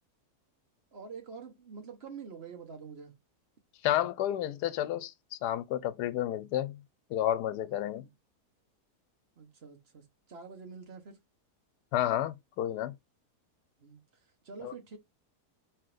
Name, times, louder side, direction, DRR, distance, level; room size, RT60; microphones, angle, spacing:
voice 1, 0.9-3.2 8.0-8.1 9.4-11.2 13.8-15.0, right 5 dB, 45° right, 1.2 m, -47 dB
voice 2, 3.8-5.1 5.4-6.8 7.1-8.0 11.9-12.9 14.6-14.7, left 12 dB, 85° left, 1.2 m, -31 dB
4.4 x 3.1 x 3.8 m
omnidirectional pair, 1.7 m